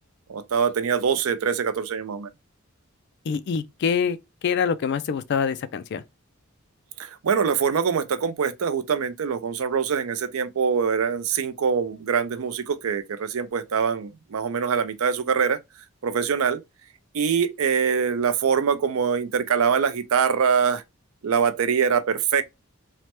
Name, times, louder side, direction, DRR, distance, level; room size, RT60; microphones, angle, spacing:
voice 1, 0.3-2.3 7.0-15.6 16.0-16.6 17.1-20.8 21.2-22.4, right 6 dB, 75° right, 0.4 m, -24 dB
voice 2, 3.3-4.2 4.4-6.0, left 6 dB, 55° left, 0.3 m, -25 dB
3.2 x 2.1 x 2.9 m
head